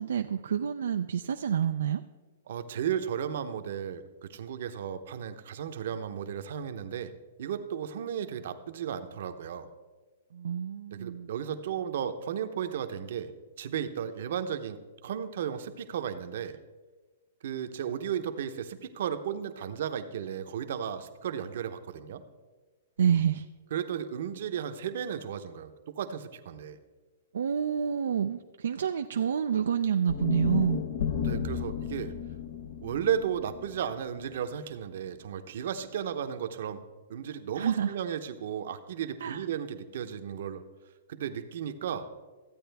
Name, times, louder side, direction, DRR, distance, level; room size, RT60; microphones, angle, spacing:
voice 1, 0.0-2.0 10.3-11.3 23.0-23.4 27.3-30.8 37.6-37.9 39.2-39.4, right 8 dB, 80° right, 7 dB, 0.4 m, -28 dB
voice 2, 2.5-7.1 7.4-9.7 10.9-13.3 13.6-16.6 17.4-22.2 23.7-26.8 31.2-32.1 32.8-36.8 37.1-40.6 41.1-42.1, right 8 dB, 65° right, 9 dB, 0.8 m, -34 dB
sound 1, 30.1-34.3, left 8 dB, 65° left, 0.9 m, -33 dB
14.0 x 8.5 x 3.4 m, 1.3 s
hypercardioid pair, 145°, 0 cm